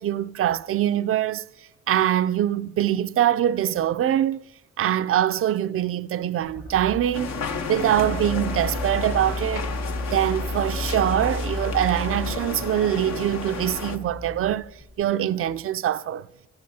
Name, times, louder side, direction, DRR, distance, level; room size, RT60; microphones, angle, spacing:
voice 1, 0.0-1.5 1.9-4.4 4.8-7.4 7.7-9.7 10.1-14.7 15.0-16.3, right 11 dB, 45° right, 0.4 m, -23 dB
sound 1, 6.4-15.0, left 1 dB, 30° left, 1.1 m, -33 dB
sound 2, 7.1-14.0, left 5 dB, 60° left, 1.0 m, -33 dB
13.5 x 12.5 x 2.8 m
cardioid pair, 90°, 30 cm